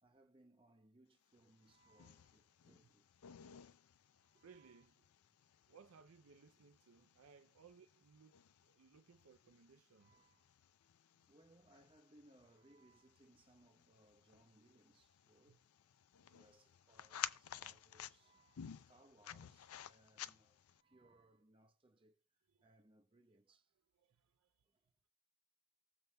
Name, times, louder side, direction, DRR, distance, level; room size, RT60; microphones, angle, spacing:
voice 1, 0.0-3.1 4.2-4.9 7.6-7.7 9.9-10.6 11.3-15.6 16.2-22.2 22.6-23.7, right 1 dB, 25° right, 0.9 m, -69 dB
sound 1, 1.4-20.8, left 10 dB, 75° left, 0.4 m, -54 dB
voice 2, 4.4-4.9 5.7-10.1 15.5-15.6 18.7-18.8 22.5-22.7 24.0-24.5, right 5 dB, 70° right, 0.5 m, -64 dB
19.0 x 6.8 x 2.2 m
head